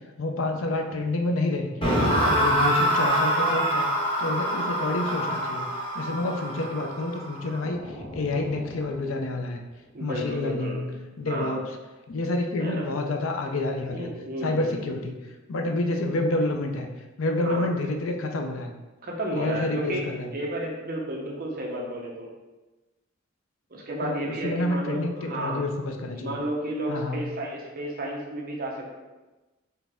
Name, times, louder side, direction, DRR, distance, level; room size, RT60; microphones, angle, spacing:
voice 1, 0.2-3.9 4.2-9.6 10.0-11.6 12.1-14.1 14.4-16.9 17.2-18.7 19.3-20.3 24.0-26.4 26.9-27.3, left 2 dB, 75° left, 4 dB, 0.6 m, -29 dB
sound 1, 1.8-8.9, equal, 25° left, 1.3 m, -26 dB
voice 2, 9.9-10.8 11.3-11.5 12.6-12.9 13.9-14.9 17.4-17.7 19.0-20.1 20.3-22.3 23.7-25.6 26.2-29.0, right 1 dB, 45° right, -2 dB, 0.9 m, -32 dB
4.5 x 3.4 x 3.5 m, 1.1 s
head